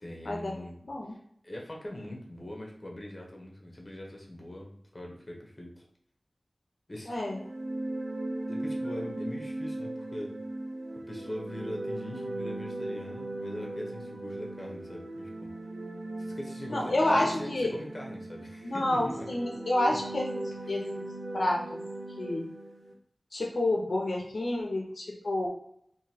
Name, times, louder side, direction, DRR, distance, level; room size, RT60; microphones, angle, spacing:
voice 1, 0.0-0.8 1.1-5.8 6.9-7.1 8.5-10.4 11.1-15.5 16.2-19.3 19.9-20.0 20.7-20.9, left 1 dB, 35° left, -1 dB, 0.9 m, -42 dB
voice 2, 0.8-1.2 7.1-7.4 16.7-17.7 18.6-21.0 21.3-21.6 22.2-22.5 23.3-25.5, left 1 dB, 80° left, -2 dB, 0.6 m, -29 dB
sound 1, 7.2-22.9, right 1 dB, 75° right, 0.5 m, -38 dB
3.7 x 2.7 x 2.8 m, 0.69 s
wide cardioid pair, 70°, 0 cm